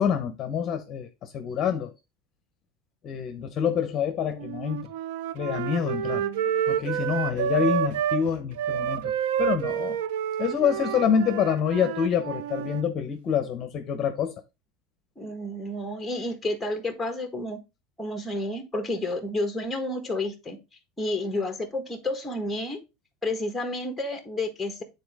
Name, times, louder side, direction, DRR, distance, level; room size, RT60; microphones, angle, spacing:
voice 1, 0.0-1.9 3.0-4.9 5.3-6.2 6.7-10.0 10.4-14.3, left 7 dB, 35° left, 1.0 m, -27 dB
Wind instrument woodwind instrument, 4.4-8.2 8.6-12.8, right 9 dB, 80° right, 0.5 m, -29 dB
voice 2, 6.1-6.5 15.2-17.6 18.0-20.6 21.0-22.8 23.2-24.8, left 1 dB, 5° left, 1.5 m, -30 dB
8.8 x 4.1 x 3.5 m
supercardioid pair, 140°, 0 cm